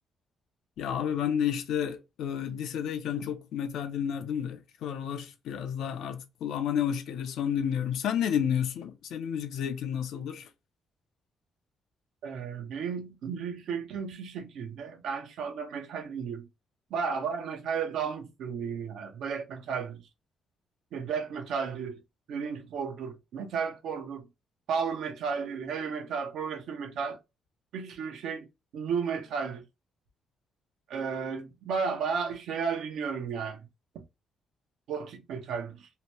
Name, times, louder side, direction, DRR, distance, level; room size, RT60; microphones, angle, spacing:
voice 1, 0.8-10.5, left 8 dB, 80° left, 0.5 m, -31 dB
voice 2, 12.2-16.5 16.9-20.0 20.9-22.0 22.3-24.2 24.7-27.2 27.7-28.5 28.7-29.6 30.9-33.6 33.9-34.0 34.9-35.9, right 6 dB, 80° right, 0.7 m, -33 dB
2.8 x 2.2 x 3.0 m
cardioid pair, 90°, 0 cm